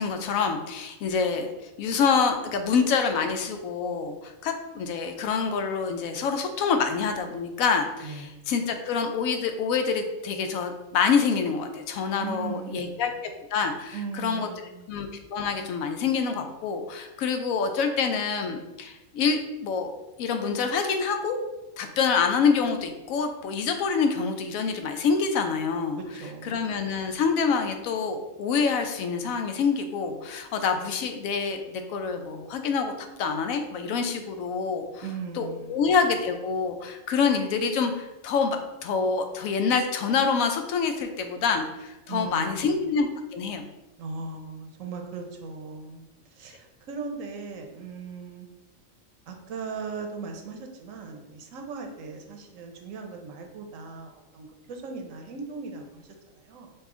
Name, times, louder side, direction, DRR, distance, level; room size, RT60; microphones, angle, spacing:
voice 1, 0.0-1.5 1.8-13.1 13.5-14.0 14.2-14.5 14.9-19.9 20.2-21.4 21.8-26.0 26.4-32.9 33.2-35.0 35.4-43.1 43.3-43.6, left 5 dB, 90° left, 6 dB, 1.0 m, -26 dB
voice 2, 8.0-8.4 12.2-13.2 13.9-14.9 26.0-26.7 35.0-35.9 42.1-42.8 44.0-48.5 49.3-56.7, right 4 dB, 75° right, 3 dB, 1.1 m, -38 dB
5.4 x 2.4 x 3.7 m, 1.0 s
omnidirectional pair, 1.4 m